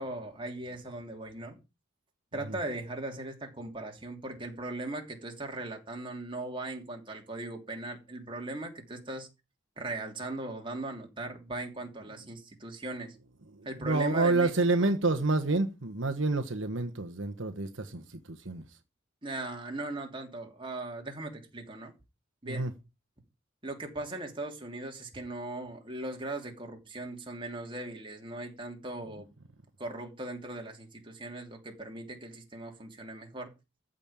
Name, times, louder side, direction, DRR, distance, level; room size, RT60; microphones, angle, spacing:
voice 1, 0.0-1.6 2.3-9.3 9.8-13.1 13.6-14.5 14.8-14.9 19.2-21.9 22.4-22.7 23.6-29.3 29.8-33.5, right 2 dB, 25° right, 3.1 m, -39 dB
voice 2, 13.5-18.8 22.4-22.7, right 3 dB, 70° right, 1.3 m, -29 dB
14.5 x 5.5 x 8.9 m
head